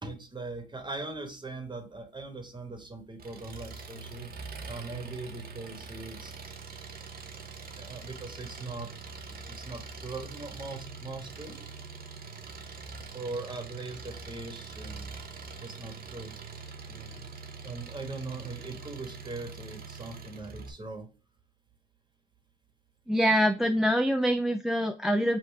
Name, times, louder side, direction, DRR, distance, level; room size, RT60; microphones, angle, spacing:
voice 1, 0.0-4.3 4.7-6.4 7.8-8.9 9.4-11.6 13.1-15.0 15.6-16.3 16.9-17.3 17.6-21.1, right 3 dB, 25° right, 6 dB, 1.4 m, -40 dB
Engine, 3.2-20.7, right 4 dB, 50° right, 0.9 m, -43 dB
voice 2, 23.1-25.4, equal, ahead, 7 dB, 0.4 m, -25 dB
5.6 x 2.6 x 3.4 m, 0.34 s
cardioid pair, 90°, 20 cm